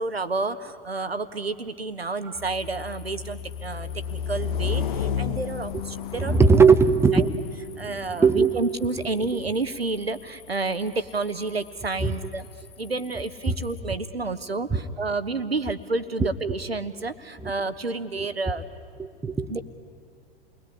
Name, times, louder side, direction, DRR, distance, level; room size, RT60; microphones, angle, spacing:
voice 1, 0.0-6.6 7.1-7.2 7.8-12.5 12.8-18.6 19.5-19.6, right 3 dB, 85° right, 12 dB, 1.1 m, -30 dB
sound 1, 2.3-13.8, left 7 dB, 55° left, 1.3 m, -34 dB
voice 2, 6.2-7.4 7.7-8.7 9.3-9.4 12.0-12.1 13.5-13.6 14.7-14.8 16.2-16.3 17.4-17.5 19.0-19.6, right 5 dB, 10° right, 9 dB, 1.1 m, -20 dB
29.0 x 20.5 x 9.8 m, 2.1 s
figure-of-eight pair, 95°, 30 cm